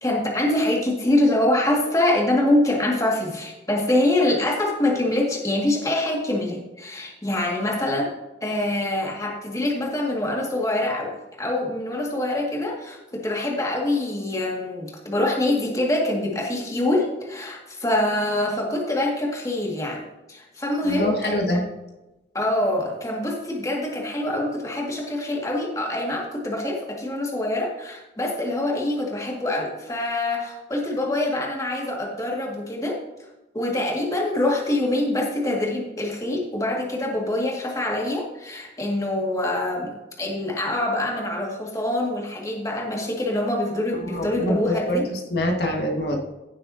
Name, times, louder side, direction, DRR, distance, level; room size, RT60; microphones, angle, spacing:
voice 1, 0.0-8.1 8.4-11.1 11.4-20.0 20.3-21.6 22.3-33.0 33.5-45.0, left 1 dB, 20° left, -1 dB, 2.1 m, -25 dB
voice 2, 20.8-21.6 44.0-46.2, equal, 65° left, 1 dB, 1.8 m, -25 dB
16.5 x 7.4 x 2.8 m, 1.0 s
head